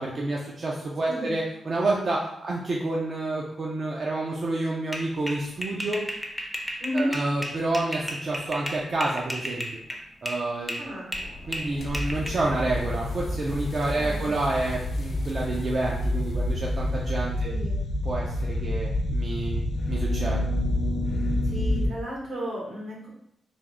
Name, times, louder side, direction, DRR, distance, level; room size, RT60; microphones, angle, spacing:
voice 1, 0.0-6.0 6.9-9.8 10.2-10.8 11.5-17.5 18.0-20.5, right 2 dB, 55° right, -3 dB, 0.5 m, -29 dB
voice 2, 1.0-1.4 6.8-7.1 10.8-11.1 13.9-14.3 17.4-17.8 21.4-23.1, equal, 85° right, -4 dB, 1.3 m, -33 dB
sound 1, 4.9-10.4 10.7-12.3, equal, 5° right, 0.6 m, -34 dB
sound 2, 11.1-16.4, left 1 dB, 40° left, 0.7 m, -43 dB
sound 3, 11.8-21.9, left 1 dB, 75° left, 0.4 m, -28 dB
3.4 x 2.0 x 3.6 m, 0.77 s
cardioid pair, 65°, 0 cm